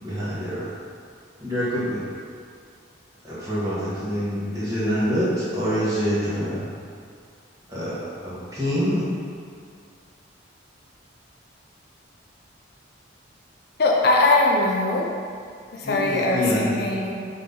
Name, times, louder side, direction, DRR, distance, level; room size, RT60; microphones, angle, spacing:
voice 1, 0.0-0.7 1.4-2.0 3.2-6.6 7.7-9.1 15.8-16.7, equal, 15° right, -12 dB, 1.6 m, -26 dB
voice 2, 13.8-15.1 15.7-17.1, left 2 dB, 50° left, -1 dB, 0.6 m, -21 dB
5.2 x 4.1 x 5.5 m, 2.2 s
head